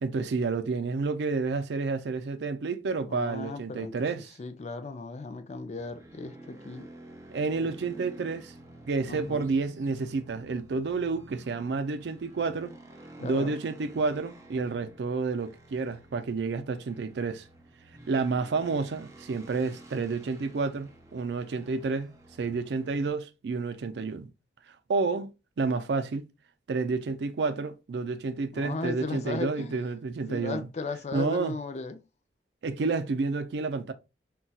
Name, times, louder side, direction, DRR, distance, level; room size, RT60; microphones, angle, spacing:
voice 1, 0.0-4.4 7.3-8.5 8.9-12.7 13.2-17.4 18.1-24.3 24.9-25.3 25.6-26.3 26.7-30.7 31.1-31.6 32.6-33.9, right 4 dB, 75° right, 0.4 m, -30 dB
voice 2, 3.1-3.9 4.4-6.9 7.6-7.7 9.1-9.5 13.2-13.6 28.5-29.9 30.3-32.0, left 3 dB, 40° left, 0.4 m, -36 dB
sound 1, 5.8-23.1, right 1 dB, 20° right, 0.6 m, -50 dB
4.0 x 2.2 x 2.3 m
head